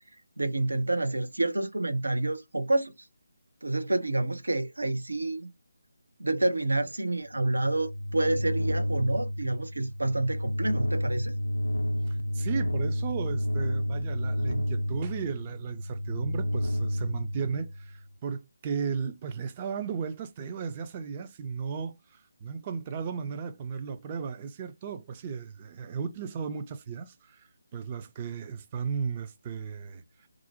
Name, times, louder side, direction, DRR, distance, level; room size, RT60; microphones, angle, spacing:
voice 1, 0.4-2.9 3.6-5.5 6.2-11.3, right 2 dB, 80° right, 0.6 m, -28 dB
sound 1, 7.4-18.0, equal, 80° left, 0.3 m, -31 dB
voice 2, 12.0-30.3, right 6 dB, 25° right, 0.4 m, -35 dB
2.4 x 2.1 x 2.7 m
figure-of-eight pair, 155°, 0 cm